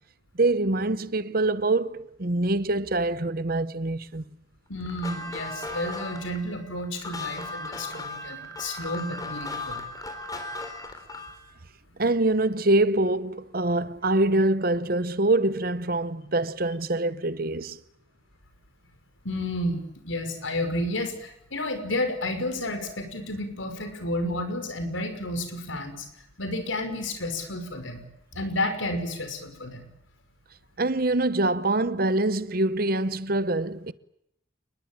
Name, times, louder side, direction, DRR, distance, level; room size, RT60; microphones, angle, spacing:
voice 1, 0.3-4.2 12.0-17.8 30.8-33.9, right 2 dB, 50° right, 1.0 m, -25 dB
voice 2, 4.7-9.8 19.2-26.1 26.4-28.0 28.3-29.9, left 1 dB, 85° left, 5.8 m, -31 dB
sound 1, 4.9-11.4, left 2 dB, 20° left, 4.2 m, -36 dB
28.0 x 21.0 x 9.0 m
head